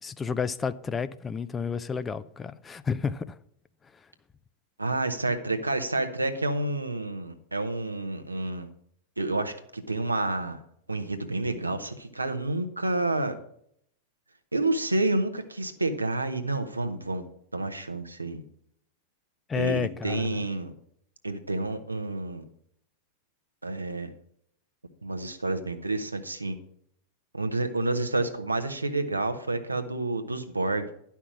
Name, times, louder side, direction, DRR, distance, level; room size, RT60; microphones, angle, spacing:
voice 1, 0.0-3.4 19.5-20.4, left 6 dB, 15° left, 0.5 m, -31 dB
voice 2, 4.8-8.7 9.2-10.6 10.9-13.3 14.5-17.2 17.5-18.4 19.5-20.7 21.2-22.4 23.6-24.1 25.0-26.6 27.3-30.9, right 2 dB, 80° right, 1.0 m, -29 dB
11.0 x 5.8 x 6.0 m
figure-of-eight pair, 90°, 0 cm